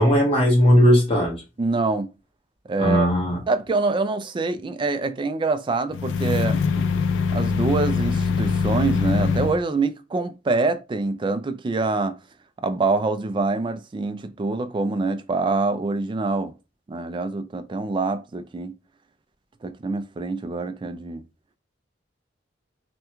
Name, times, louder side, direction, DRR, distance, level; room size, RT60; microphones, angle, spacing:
voice 1, 0.0-1.4 2.8-3.4, equal, 30° left, 1.2 m, -17 dB
voice 2, 1.6-2.1 2.7-3.1 3.5-6.9 7.3-12.2 12.6-16.5 16.9-18.7 19.6-21.2, right 3 dB, 25° right, 0.3 m, -25 dB
sound 1, 5.9-9.6, left 5 dB, 80° left, 0.3 m, -23 dB
3.4 x 2.1 x 2.9 m
head